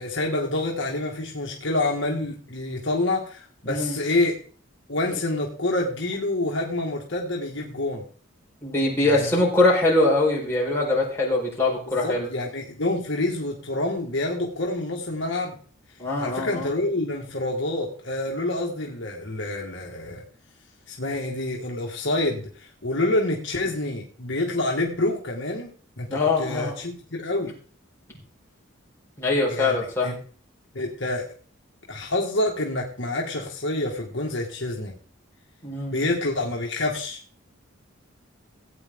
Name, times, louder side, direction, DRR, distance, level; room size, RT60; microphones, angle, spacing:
voice 1, 0.0-4.3 4.9-8.0 9.0-9.4 11.9-15.6 16.2-20.2 20.9-25.7 26.0-27.5 29.5-30.2 30.7-31.3 31.9-34.9 35.9-37.2, left 2 dB, 55° left, -1 dB, 1.8 m, -27 dB
voice 2, 3.7-4.0 8.6-12.3 16.0-16.7 26.1-26.7 29.2-30.1 35.6-36.0, left 2 dB, 10° left, -4 dB, 4.4 m, -22 dB
16.5 x 8.9 x 3.7 m, 0.43 s
head